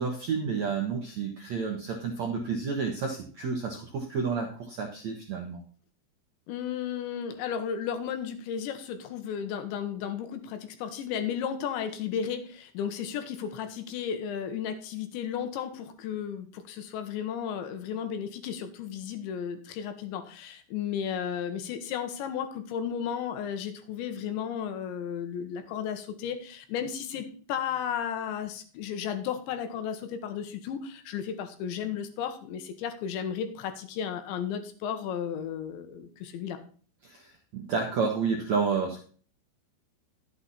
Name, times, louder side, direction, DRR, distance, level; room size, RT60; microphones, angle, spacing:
voice 1, 0.0-5.6 37.0-39.0, right 5 dB, 75° right, 1 dB, 1.6 m, -30 dB
voice 2, 6.5-36.6, left 8 dB, 75° left, 8 dB, 3.4 m, -34 dB
12.0 x 8.2 x 4.2 m, 0.42 s
omnidirectional pair, 5.5 m